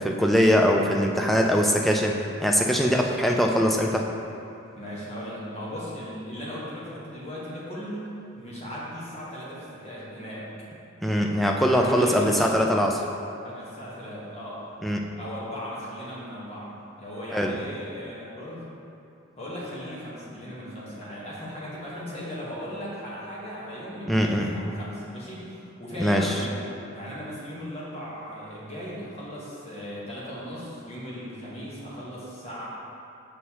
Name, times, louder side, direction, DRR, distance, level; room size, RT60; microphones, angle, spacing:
voice 1, 0.0-4.1 11.0-13.0 14.8-15.1 17.3-17.5 24.1-24.5 26.0-26.3, equal, ahead, 0 dB, 0.3 m, -22 dB
voice 2, 2.7-3.2 4.7-10.5 11.7-12.5 13.4-14.7 15.2-18.6 19.4-26.6 26.9-32.7, equal, 30° left, -7 dB, 1.3 m, -37 dB
6.5 x 5.4 x 2.9 m, 2.7 s
head